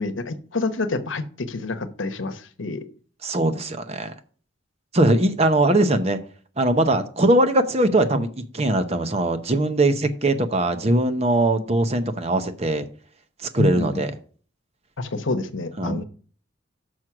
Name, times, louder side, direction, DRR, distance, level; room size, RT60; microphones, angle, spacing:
voice 1, 0.0-2.8 13.6-14.0 15.0-16.0, left 3 dB, 80° left, 10 dB, 1.0 m, -27 dB
voice 2, 3.2-4.1 4.9-6.2 6.6-8.3 8.5-12.9 13.5-14.1 15.8-16.0, right 1 dB, 30° right, 9 dB, 0.8 m, -21 dB
6.3 x 6.2 x 6.0 m, 0.43 s
head